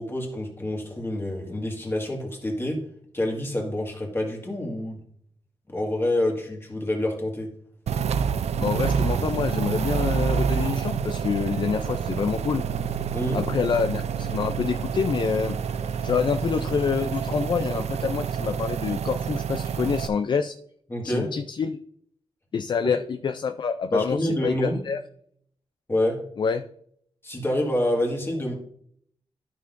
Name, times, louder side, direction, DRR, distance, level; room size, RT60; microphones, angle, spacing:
voice 1, 0.0-2.8 3.1-5.0 5.7-7.5 13.1-13.4 20.9-21.3 22.8-22.9 23.9-24.8 25.9-26.2 27.2-28.6, left 1 dB, 20° left, 0 dB, 1.7 m, -27 dB
sound 1, 7.9-20.1, right 7 dB, 90° right, 0.4 m, -28 dB
voice 2, 8.6-12.6 13.3-15.6 16.0-20.5 21.0-21.8 22.5-25.0 26.4-26.6, left 6 dB, 45° left, 8 dB, 0.4 m, -27 dB
12.5 x 5.7 x 2.5 m, 0.66 s
wide cardioid pair, 145°, 11 cm